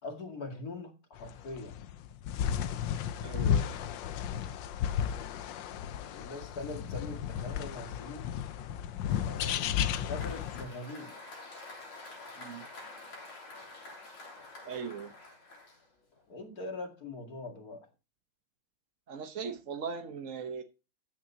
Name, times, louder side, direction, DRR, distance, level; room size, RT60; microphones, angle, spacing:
voice 1, 0.0-1.8 6.0-8.3 9.2-11.2 16.3-17.9, left 2 dB, 45° left, 2.8 m, -42 dB
sound 1, 1.2-10.7, left 9 dB, 70° left, 1.3 m, -33 dB
voice 2, 3.2-3.7 12.4-12.6 14.6-15.1 19.1-20.6, right 6 dB, 50° right, 1.1 m, -39 dB
Applause, 9.1-16.2, left 2 dB, 85° left, 4.3 m, -49 dB
14.0 x 9.3 x 2.8 m
omnidirectional pair, 2.3 m